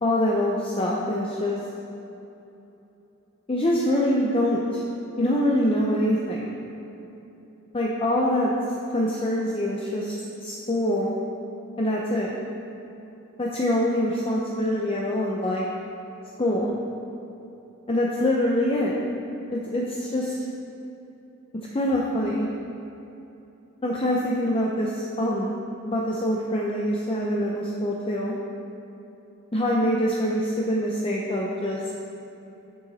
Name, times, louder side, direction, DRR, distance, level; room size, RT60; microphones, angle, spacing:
voice 1, 0.0-1.6 3.5-4.8 5.2-6.6 7.7-8.5 8.9-11.1 11.8-12.3 13.4-15.7 16.4-16.7 17.9-19.0 19.5-20.3 21.7-22.5 23.8-25.5 25.8-28.3 29.5-31.8, left 1 dB, 25° left, -3 dB, 0.7 m, -24 dB
10.5 x 7.0 x 4.1 m, 3.0 s
head